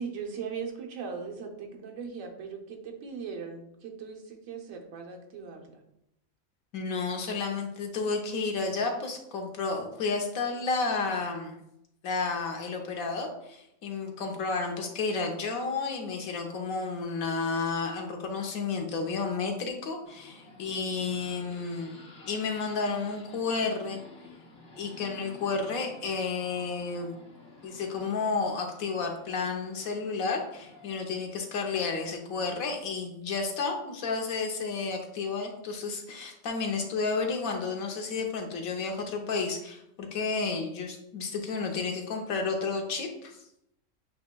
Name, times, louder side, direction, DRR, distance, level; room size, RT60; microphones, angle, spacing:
voice 1, 0.0-5.8, right 5 dB, 75° right, 2 dB, 1.1 m, -39 dB
voice 2, 6.7-11.6 12.0-22.0 22.3-24.0 24.8-27.2 27.6-43.3, left 4 dB, 85° left, 2 dB, 1.2 m, -31 dB
sound 1, 20.0-31.0, left 3 dB, 60° left, 1.5 m, -52 dB
8.0 x 2.9 x 2.2 m, 0.80 s
omnidirectional pair, 1.4 m